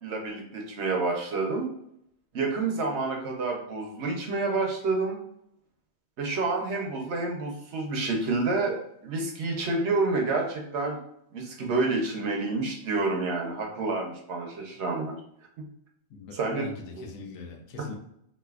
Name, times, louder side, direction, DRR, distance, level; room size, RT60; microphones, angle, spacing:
voice 1, 0.0-1.7 2.3-5.2 6.2-11.0 11.3-15.1 16.3-16.7 17.0-17.1 17.8-17.9, right 3 dB, 60° right, 1 dB, 0.9 m, -29 dB
voice 2, 16.1-17.9, left 5 dB, 80° left, 3 dB, 1.1 m, -41 dB
4.1 x 2.6 x 2.3 m, 0.73 s
omnidirectional pair, 1.4 m